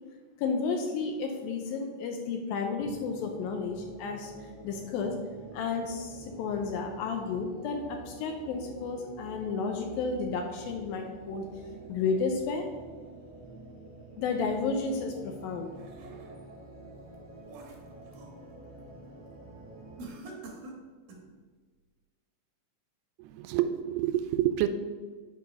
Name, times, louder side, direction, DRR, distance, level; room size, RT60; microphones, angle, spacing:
voice 1, 0.4-4.3 4.6-5.2 5.5-11.5 11.9-12.7 14.2-15.7, left 4 dB, 85° left, 4 dB, 2.0 m, -32 dB
sound 1, 2.8-20.1, right 2 dB, 40° right, 0.6 m, -48 dB
sound 2, 15.4-16.6 17.0-18.4 18.8-19.1 20.0-21.3, right 2 dB, 65° right, 2.6 m, -47 dB
voice 2, 23.2-24.7, right 12 dB, 85° right, 9 dB, 2.5 m, -28 dB
9.3 x 4.7 x 5.3 m, 1.5 s
omnidirectional pair, 5.0 m